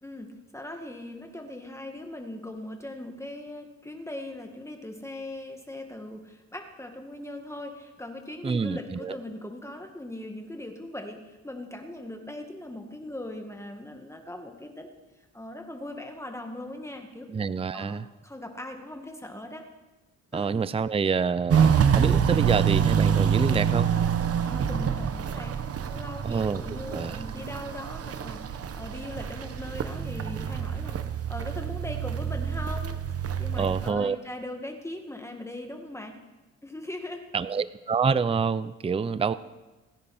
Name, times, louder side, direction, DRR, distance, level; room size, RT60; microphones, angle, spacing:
voice 1, 0.0-14.9 15.3-17.3 17.7-19.7 20.3-20.6 24.4-25.5 25.9-31.0 31.3-33.0 33.4-36.2 36.6-37.2 39.3-39.4, left 1 dB, 10° left, 3 dB, 2.0 m, -40 dB
voice 2, 8.4-9.2 17.3-18.1 20.3-23.9 26.2-26.6 26.9-27.2 33.6-34.2 37.3-39.3, right 5 dB, 20° right, 15 dB, 0.5 m, -27 dB
Walk footsteps, 21.5-33.9, right 8 dB, 50° right, 1.1 m, -26 dB
29.5 x 10.5 x 4.4 m, 1.2 s
cardioid pair, 90°, 30 cm